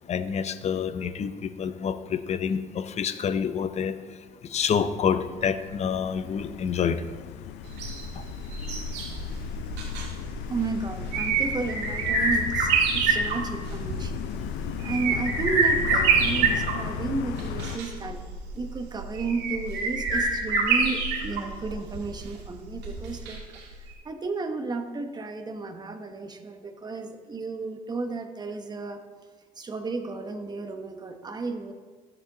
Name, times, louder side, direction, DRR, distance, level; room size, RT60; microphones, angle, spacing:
voice 1, 0.1-1.3 1.6-3.9 4.5-7.0, left 7 dB, 40° left, 12 dB, 0.6 m, -27 dB
sound 1, 4.5-17.8, left 11 dB, 85° left, 0.5 m, -36 dB
sound 2, 7.7-23.6 23.9-24.0, right 4 dB, 80° right, 1.9 m, -27 dB
voice 2, 10.5-14.2 14.8-18.2 18.5-29.0 29.6-31.7, right 3 dB, 25° right, 6 dB, 1.0 m, -33 dB
13.0 x 7.1 x 3.9 m, 1.4 s
cardioid pair, 110°, 17 cm